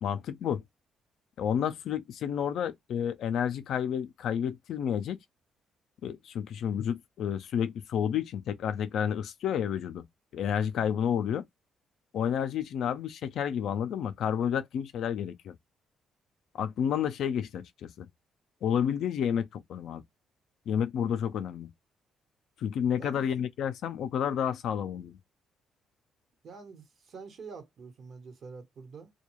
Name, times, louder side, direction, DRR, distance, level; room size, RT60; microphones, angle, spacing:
voice 1, 0.0-0.6 1.4-5.2 6.0-10.0 10.3-11.4 12.1-15.5 16.5-18.1 18.6-20.0 20.7-21.7 22.6-25.2, left 8 dB, 75° left, 0.4 m, -30 dB
voice 2, 26.4-29.1, right 5 dB, 60° right, 1.1 m, -46 dB
2.2 x 2.2 x 3.0 m
cardioid pair, 90°, 0 cm